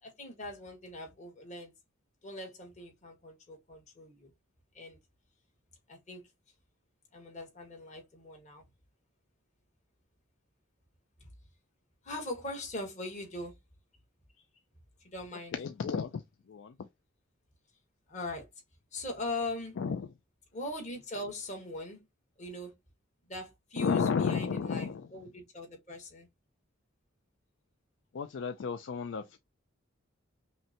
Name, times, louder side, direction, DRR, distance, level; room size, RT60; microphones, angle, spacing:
voice 1, 0.0-1.7 2.2-4.3 4.7-5.0 5.9-6.2 7.1-8.6 11.2-11.3 12.0-13.5 15.0-15.5 18.1-18.5 18.9-19.8 20.5-22.0 22.4-22.7 23.3-26.3, left 2 dB, 35° left, 1.4 m, -41 dB
voice 2, 15.5-16.2 16.5-16.7 19.8-20.1 23.8-25.1 28.1-29.4, left 6 dB, 65° left, 0.4 m, -32 dB
5.6 x 2.2 x 2.8 m
head